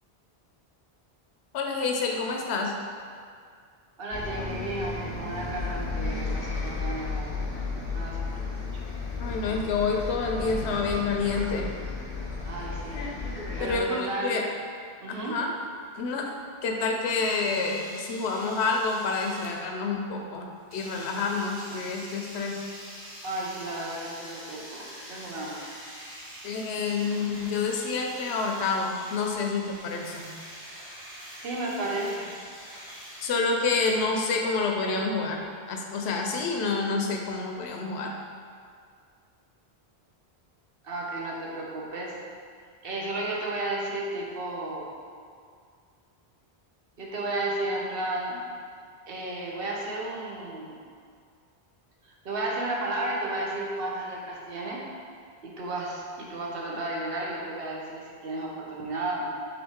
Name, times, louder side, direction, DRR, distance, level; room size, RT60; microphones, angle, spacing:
voice 1, 1.5-2.7 9.2-11.7 13.6-14.4 15.1-15.5 15.9-16.4 16.6-22.7 26.4-30.3 33.2-38.1, left 4 dB, 85° left, 1 dB, 0.9 m, -28 dB
voice 2, 4.0-7.5 7.9-8.7 12.5-13.1 13.6-14.5 15.0-15.4 23.2-25.7 31.4-32.3 40.8-42.2 42.8-44.9 47.0-48.4 49.1-50.8 52.0-54.9 55.4-59.3, right 2 dB, 65° right, -3 dB, 0.9 m, -33 dB
Bus, 4.1-13.8, left 3 dB, 50° left, 1.1 m, -33 dB
sound 1, 17.1-19.7 20.7-33.3, equal, 15° right, 0.6 m, -45 dB
3.8 x 3.7 x 3.5 m, 2.2 s
omnidirectional pair, 1.1 m